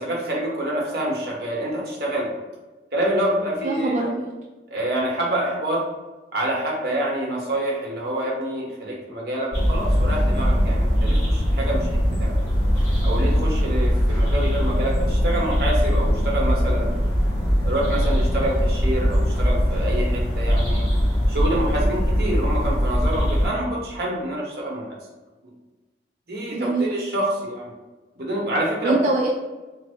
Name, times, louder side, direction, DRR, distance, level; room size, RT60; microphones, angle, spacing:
voice 1, 0.0-2.3 2.9-4.0 4.7-5.8 6.3-11.9 12.2-12.3 13.0-17.0 17.6-20.9 21.3-25.0 26.3-27.7 28.2-28.9, right 1 dB, 60° right, -3 dB, 0.9 m, -26 dB
voice 2, 3.6-4.3 26.5-26.9 28.8-29.3, right 2 dB, 40° right, -2 dB, 0.3 m, -23 dB
sound 1, 9.5-23.5, equal, 20° left, 1.3 m, -21 dB
3.4 x 2.0 x 3.4 m, 1.2 s
head